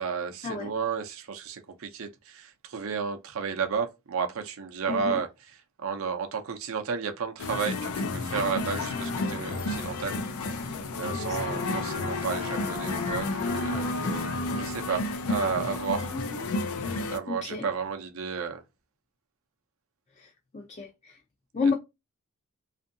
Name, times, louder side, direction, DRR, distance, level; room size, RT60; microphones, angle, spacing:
voice 1, 0.0-10.2 10.4-10.6 11.0-16.1 17.1-18.6 21.6-21.7, right 6 dB, 70° right, 0.5 m, -32 dB
voice 2, 4.9-5.2 11.1-11.4 17.3-17.7 20.2-20.3 20.5-21.2 21.5-21.7, left 4 dB, 30° left, 0.4 m, -30 dB
sound 1, 7.4-17.2, left 2 dB, 85° left, 0.5 m, -32 dB
sound 2, 8.3-11.0 11.3-14.9, left 3 dB, 55° left, 0.9 m, -37 dB
2.6 x 2.5 x 2.5 m
head